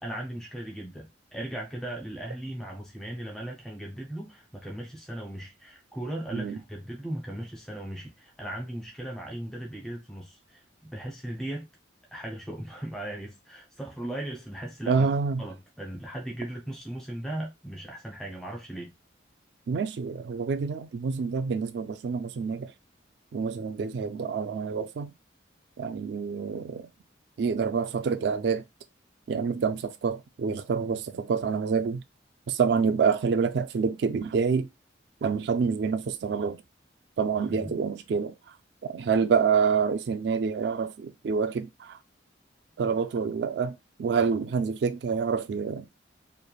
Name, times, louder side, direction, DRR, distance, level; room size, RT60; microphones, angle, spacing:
voice 1, 0.0-10.6 10.9-11.6 12.1-15.1 15.4-18.9 37.5-37.8, right 1 dB, 5° left, 0.5 m, -37 dB
voice 2, 14.9-15.4 19.7-22.7 23.3-25.1 25.8-26.9 27.4-28.6 29.3-32.0 32.5-34.7 35.2-36.6 37.2-38.3 38.8-42.0 42.8-45.9, right 5 dB, 65° right, 0.3 m, -27 dB
3.1 x 2.1 x 2.3 m
head